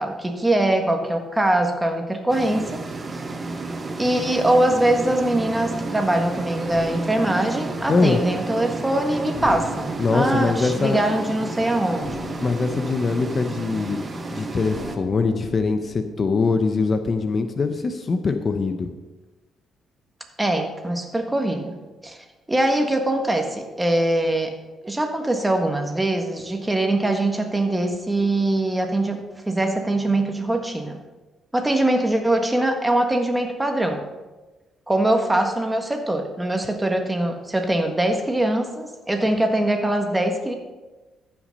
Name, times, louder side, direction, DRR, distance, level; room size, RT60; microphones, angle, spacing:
voice 1, 0.0-2.8 3.1-3.2 4.0-12.3 20.4-24.5 24.8-29.2 29.5-31.0 31.5-34.0 34.9-40.5, right 1 dB, 10° right, 4 dB, 1.6 m, -22 dB
sound 1, 2.3-15.0, right 3 dB, 30° right, 1.3 m, -32 dB
sound 2, 6.7-7.1 9.3-10.3 12.0-13.1 14.6-16.0, left 2 dB, 90° left, 1.4 m, -37 dB
voice 2, 7.9-8.2 10.0-11.0 12.4-14.0 14.3-18.9, left 4 dB, 40° left, 8 dB, 0.8 m, -22 dB
14.0 x 6.1 x 5.3 m, 1.2 s
cardioid pair, 90°, 0 cm